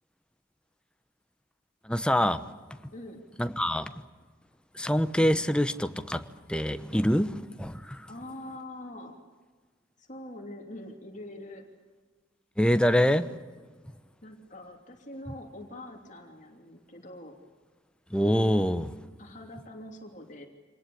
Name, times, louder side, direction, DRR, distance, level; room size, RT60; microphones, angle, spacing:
voice 1, 1.8-2.4 3.4-3.9 4.7-8.1 12.6-13.3 18.1-18.9, equal, 5° left, 1.0 m, -25 dB
voice 2, 2.9-3.2 8.1-9.1 10.0-11.7 14.2-17.3 19.2-20.5, left 1 dB, 40° left, 2.9 m, -44 dB
26.5 x 19.5 x 8.5 m
head